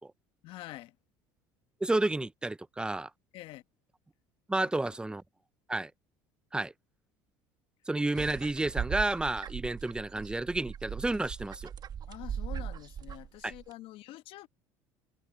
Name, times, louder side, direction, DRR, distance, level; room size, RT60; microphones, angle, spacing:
voice 1, 0.4-0.9 3.3-3.6 4.6-4.7 12.1-14.5, left 16 dB, 65° left, 1.2 m, -46 dB
voice 2, 1.8-3.1 4.5-5.2 5.7-5.9 6.5-6.7 7.9-11.7 13.4-13.5, right 2 dB, 10° right, 0.6 m, -31 dB
sound 1, 8.2-13.7, right 8 dB, 45° right, 1.3 m, -39 dB
supercardioid pair, 80°, 10 cm